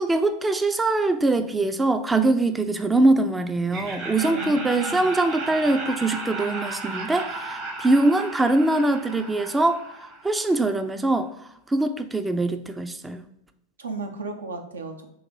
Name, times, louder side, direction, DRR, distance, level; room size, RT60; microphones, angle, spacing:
voice 1, 0.0-11.3 11.7-13.2, right 2 dB, 10° right, 9 dB, 0.3 m, -23 dB
Laughter, 3.7-10.6, right 2 dB, 45° right, 1.1 m, -34 dB
voice 2, 4.2-5.0 13.8-15.0, right 3 dB, 85° right, 5 dB, 0.6 m, -34 dB
3.9 x 2.5 x 4.5 m, 0.81 s
hypercardioid pair, 90°, 0 cm